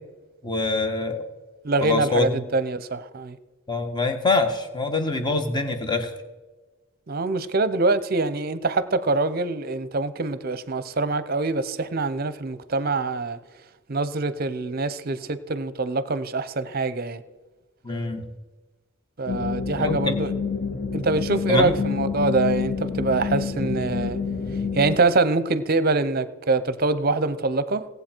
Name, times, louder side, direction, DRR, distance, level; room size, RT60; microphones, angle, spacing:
voice 1, 0.4-1.2 1.8-2.4 3.7-6.1 17.8-18.2 19.8-20.0 21.5-21.7, left 3 dB, 20° left, 1.4 m, -24 dB
voice 2, 1.6-3.4 7.1-13.4 13.9-17.2 19.2-20.3 20.9-24.2 24.7-27.9, right 3 dB, 50° right, 0.7 m, -24 dB
sound 1, 19.3-25.0, left 5 dB, 40° left, 0.9 m, -28 dB
18.0 x 8.1 x 4.5 m
head